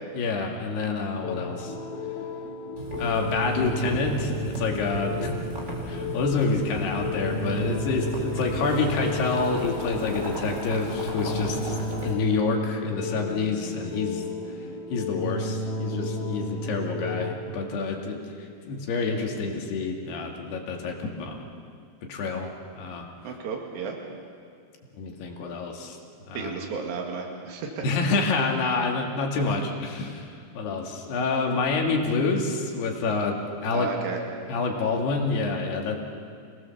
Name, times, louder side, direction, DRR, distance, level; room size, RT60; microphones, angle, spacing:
voice 1, 0.1-1.7 3.0-5.4 5.9-11.8 12.0-14.2 14.9-21.4 22.0-23.1 25.0-26.0 26.3-26.5 27.8-30.3 30.6-33.9 34.5-36.0, left 4 dB, 75° left, 1 dB, 4.1 m, -28 dB
sound 1, 1.2-17.4, left 2 dB, 55° left, 4.7 m, -33 dB
Boiling, 2.8-12.1, right 2 dB, 15° right, 3.7 m, -35 dB
voice 2, 23.2-24.0 26.3-27.8 33.7-34.2, right 5 dB, 65° right, 0 dB, 3.9 m, -33 dB
29.0 x 19.0 x 7.2 m, 2.2 s
omnidirectional pair, 4.7 m